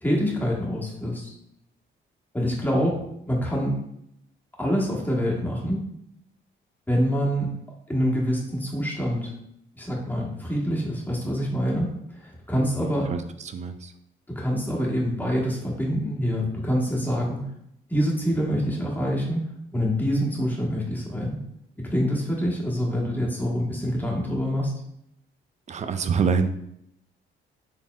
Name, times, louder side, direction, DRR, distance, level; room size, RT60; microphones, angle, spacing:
voice 1, 0.0-1.3 2.3-3.8 4.6-5.8 6.9-7.5 7.9-9.3 9.7-13.1 14.3-17.4 17.9-19.4 19.7-21.4 21.8-24.7, equal, 10° left, -3 dB, 1.2 m, -26 dB
voice 2, 12.6-13.9 25.7-26.5, right 5 dB, 35° right, 9 dB, 0.4 m, -27 dB
4.3 x 3.5 x 2.3 m, 0.76 s
cardioid pair, 90°, 20 cm